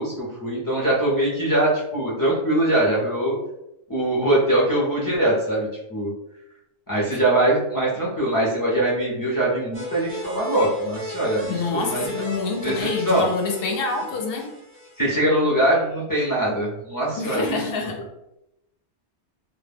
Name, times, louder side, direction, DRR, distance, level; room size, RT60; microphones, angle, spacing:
voice 1, 0.0-3.3 3.9-6.1 6.9-12.1 12.6-13.3 15.0-17.6, right 1 dB, 30° left, -6 dB, 0.4 m, -22 dB
sound 1, 9.7-15.1, equal, 35° right, 0.5 m, -36 dB
voice 2, 11.5-14.5 17.2-18.0, left 4 dB, 65° left, 2 dB, 0.7 m, -27 dB
2.2 x 2.0 x 3.3 m, 0.87 s
omnidirectional pair, 1.2 m